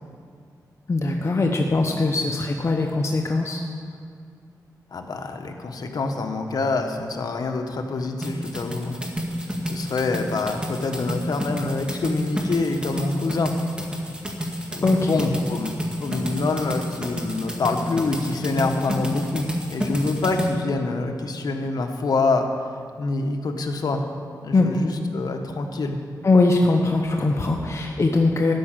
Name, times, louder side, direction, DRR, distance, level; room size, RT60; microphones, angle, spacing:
voice 1, 0.9-3.6 14.8-15.3 24.5-24.7 26.2-28.5, left 3 dB, 45° left, 1 dB, 1.0 m, -21 dB
voice 2, 4.9-9.0 9.7-13.5 14.7-15.7 16.0-22.5 23.0-24.0 24.4-26.0, left 3 dB, 65° left, 4 dB, 1.3 m, -26 dB
sound 1, 8.2-20.5, equal, 15° right, 2.0 m, -29 dB
13.5 x 6.1 x 9.0 m, 2.2 s
cardioid pair, 75°, 7 cm